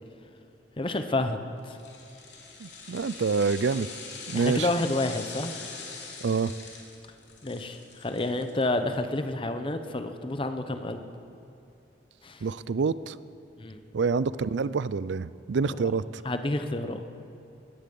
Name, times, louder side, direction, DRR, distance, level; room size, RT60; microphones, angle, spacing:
voice 1, 0.8-1.4 1.6-1.8 4.3-5.5 7.4-11.0 12.2-12.5 13.6-13.8 15.6-15.9 16.2-17.0, left 2 dB, 30° left, 8 dB, 0.9 m, -29 dB
sound 1, 1.6-8.9 9.3-9.4, left 4 dB, 70° left, 3.1 m, -42 dB
voice 2, 2.6-3.9 4.3-4.7 6.2-6.5 12.4-13.2 13.9-16.2, right 5 dB, 75° right, 17 dB, 0.4 m, -27 dB
19.0 x 14.5 x 5.3 m, 2.9 s
head